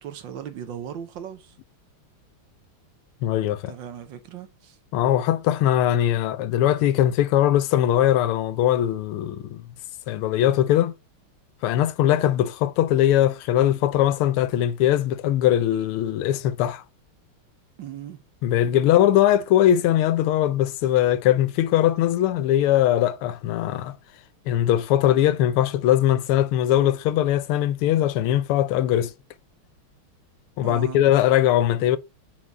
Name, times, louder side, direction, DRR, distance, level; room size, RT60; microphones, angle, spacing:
voice 1, 0.0-1.6 3.7-4.8 17.8-18.2 30.6-31.0, right 9 dB, 65° right, 1.4 m, -37 dB
voice 2, 3.2-3.7 4.9-9.6 10.1-10.9 11.6-16.8 18.4-24.0 24.5-29.1 30.6-32.0, left 12 dB, 85° left, 1.5 m, -21 dB
5.4 x 4.6 x 6.0 m
omnidirectional pair, 2.4 m